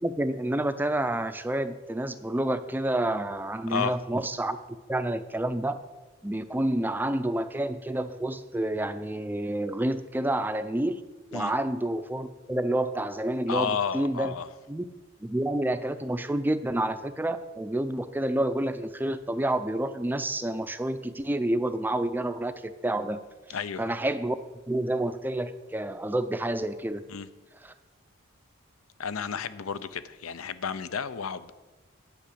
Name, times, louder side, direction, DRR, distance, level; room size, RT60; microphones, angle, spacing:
voice 1, 0.0-4.6 4.9-5.8 6.2-11.0 11.3-14.3 14.7-14.8 15.2-23.2 23.8-24.4 24.7-27.0 27.6-27.7, right 1 dB, 10° right, 11 dB, 0.4 m, -29 dB
voice 2, 13.5-14.5 23.5-23.8 27.1-27.3 29.0-31.5, left 6 dB, 90° left, 14 dB, 0.6 m, -32 dB
10.5 x 5.9 x 8.4 m, 1.3 s
head